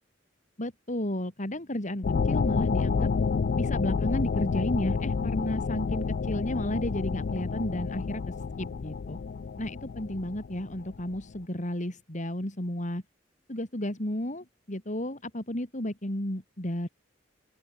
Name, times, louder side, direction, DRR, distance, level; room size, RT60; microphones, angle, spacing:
voice 1, 0.6-3.1 3.6-9.2 9.6-13.0 13.5-16.9, left 1 dB, 40° left, 3.5 m, -33 dB
sound 1, 2.0-11.2, left 5 dB, 55° left, 0.4 m, -29 dB
open air
head